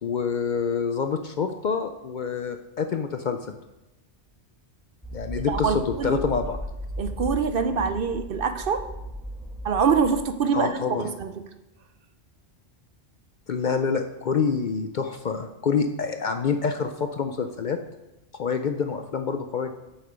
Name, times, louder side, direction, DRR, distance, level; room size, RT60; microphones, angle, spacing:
voice 1, 0.0-3.6 5.1-6.6 10.5-11.1 13.5-17.8 18.3-19.7, left 5 dB, 55° left, 7 dB, 0.6 m, -27 dB
sound 1, 5.0-10.4, equal, ahead, 1.7 m, -36 dB
voice 2, 5.5-6.2 7.0-8.9 9.6-11.3, right 6 dB, 60° right, 10 dB, 0.8 m, -25 dB
8.7 x 7.3 x 5.1 m, 1.0 s
omnidirectional pair, 1.2 m